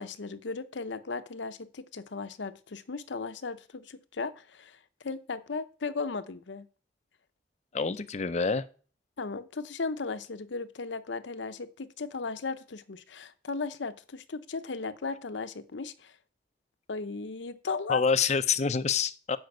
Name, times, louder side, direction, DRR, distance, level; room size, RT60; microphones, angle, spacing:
voice 1, 0.0-6.7 9.2-16.1 16.9-18.0, left 4 dB, 85° left, 0.7 m, -36 dB
voice 2, 7.7-8.6 17.9-19.4, left 5 dB, 40° left, 0.5 m, -27 dB
9.4 x 5.2 x 7.8 m
head